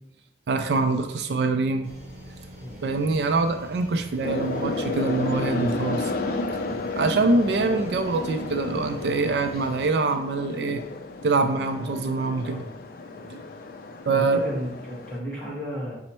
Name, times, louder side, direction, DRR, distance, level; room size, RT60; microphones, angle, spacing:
voice 1, 0.5-1.9 2.8-6.1 7.0-10.8 11.2-12.7 13.3-13.4 14.1-14.4, right 3 dB, 65° right, 7 dB, 0.3 m, -24 dB
sound 1, 1.8-9.8, equal, 15° right, 1.6 m, -45 dB
sound 2, 4.2-15.2, left 2 dB, 55° left, 0.4 m, -32 dB
voice 2, 14.1-16.0, equal, 5° left, -6 dB, 1.3 m, -33 dB
5.2 x 2.1 x 4.3 m, 0.86 s
head